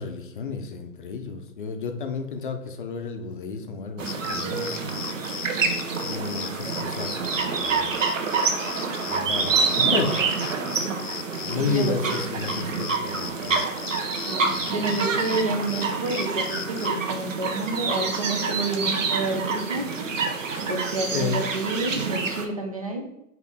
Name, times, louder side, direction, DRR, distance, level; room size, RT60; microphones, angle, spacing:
voice 1, 0.0-5.0 6.0-7.9 9.1-10.1 11.4-13.7 21.1-21.4, left 5 dB, 35° left, 5 dB, 0.6 m, -31 dB
sound 1, 4.0-22.4, right 4 dB, 55° right, 0.8 m, -27 dB
sound 2, 4.1-16.9, left 8 dB, 75° left, 0.6 m, -38 dB
voice 2, 5.9-6.3 10.8-12.0 14.1-19.9 20.7-23.1, right 2 dB, 25° right, 2 dB, 0.4 m, -30 dB
4.7 x 3.2 x 3.6 m, 0.85 s
figure-of-eight pair, 130°, 46 cm